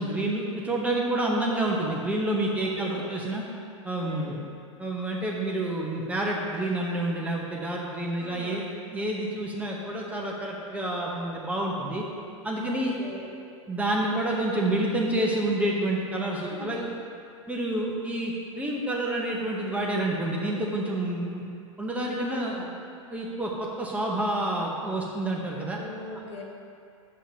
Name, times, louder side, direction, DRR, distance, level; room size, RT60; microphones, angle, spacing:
voice 1, 0.0-3.4 3.8-4.3 4.8-12.0 12.4-12.9 13.7-16.9 17.5-21.4 21.8-22.6 23.1-25.8 26.1-26.2, right 1 dB, 10° right, -3 dB, 0.9 m, -28 dB
voice 2, 2.6-3.1 4.0-4.4 8.2-8.6 12.6-13.3 16.5-16.8 22.3-22.6 25.7-26.4, left 2 dB, 60° left, -3 dB, 1.7 m, -41 dB
9.6 x 7.5 x 2.9 m, 2.5 s
hypercardioid pair, 105°, 17 cm